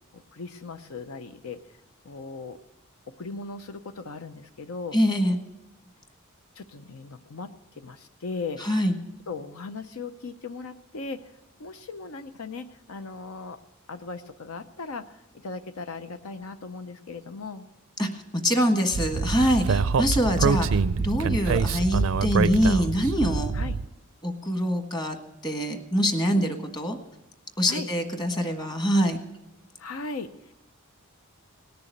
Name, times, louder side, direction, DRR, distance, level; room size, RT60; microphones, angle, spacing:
voice 1, 0.1-1.6 2.0-2.6 3.1-5.0 6.6-8.6 9.3-11.3 11.6-13.6 13.9-17.7 23.5-23.8 26.4-26.5 27.7-27.9 29.8-30.5, left 4 dB, 75° left, 9 dB, 0.7 m, -38 dB
voice 2, 4.9-5.4 8.6-8.9 18.0-23.5 24.2-25.2 25.4-27.0 27.6-29.2, equal, 20° left, 5 dB, 1.4 m, -24 dB
Speech, 18.9-23.9, right 5 dB, 65° right, 0.4 m, -25 dB
18.5 x 6.9 x 9.1 m, 0.92 s
head